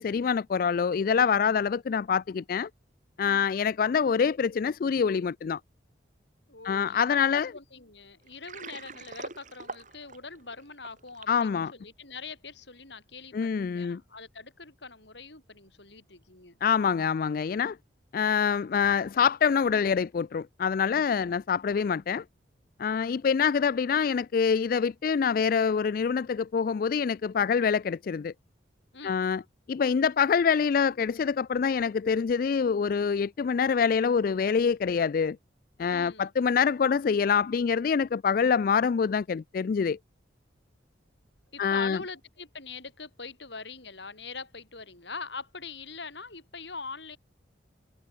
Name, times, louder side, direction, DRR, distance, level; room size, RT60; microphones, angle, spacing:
voice 1, 0.0-2.7 3.2-5.6 6.6-7.5 11.3-11.7 13.3-14.0 16.6-17.8 18.1-22.2 22.8-28.3 29.0-29.4 29.7-35.4 35.8-40.0 41.6-42.0, left 6 dB, 50° left, 0.3 m, -25 dB
voice 2, 6.5-16.6 21.2-21.4 22.9-23.2 28.9-29.2 35.9-36.3 41.5-47.2, left 4 dB, 70° left, 6.5 m, -43 dB
Water, 8.3-11.4, right 3 dB, 40° right, 8.0 m, -43 dB
head